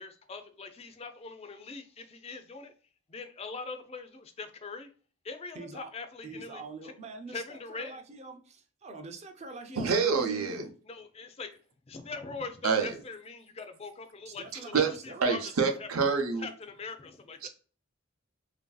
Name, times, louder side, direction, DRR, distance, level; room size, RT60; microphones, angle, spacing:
voice 1, 0.0-2.7 3.1-4.9 5.2-6.9 7.3-8.0 10.9-11.5 11.9-15.4 15.8-15.9 16.4-17.5, left 4 dB, 30° left, 0.4 m, -42 dB
voice 2, 5.5-5.9 6.2-10.7 14.3-15.3, right 3 dB, 30° right, 0.5 m, -44 dB
voice 3, 9.8-10.6 12.6-12.9 14.7-14.9 15.2-16.5 17.4-17.5, right 5 dB, 85° right, 0.6 m, -26 dB
3.1 x 2.6 x 2.2 m
head